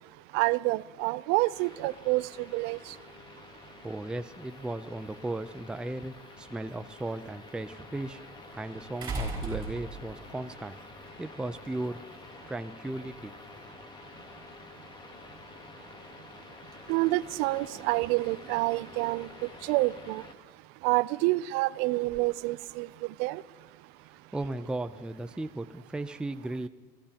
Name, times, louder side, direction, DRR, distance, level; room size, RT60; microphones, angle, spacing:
voice 1, 0.3-2.2 2.5-2.8 16.9-19.3 19.6-20.2 20.8-22.9 23.2-23.4, right 20 dB, 70° right, 19 dB, 0.5 m, -27 dB
sound 1, 1.5-20.3, left 4 dB, 25° left, 1.3 m, -49 dB
voice 2, 3.8-10.8 11.2-12.0 12.5-13.3 24.3-26.7, right 2 dB, 5° right, 9 dB, 0.5 m, -36 dB
sound 2, 5.7-5.8 9.0-10.3 11.6-11.7, right 3 dB, 25° right, 5.7 m, -35 dB
29.0 x 15.5 x 2.9 m, 1.5 s
supercardioid pair, 120°, 17 cm